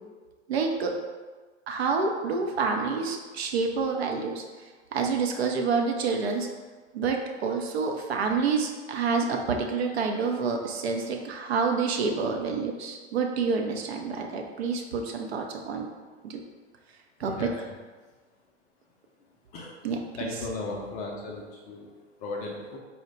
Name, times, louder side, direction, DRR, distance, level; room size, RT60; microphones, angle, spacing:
voice 1, 0.5-1.0 1.7-4.4 4.9-6.5 6.9-15.9 16.2-16.4 17.2-17.5 19.8-20.3, right 5 dB, 60° right, 3 dB, 0.6 m, -28 dB
voice 2, 17.2-17.5 19.5-19.8 20.2-22.8, left 3 dB, 20° left, -1 dB, 0.4 m, -36 dB
4.4 x 2.1 x 3.9 m, 1.4 s
figure-of-eight pair, 90°, 35 cm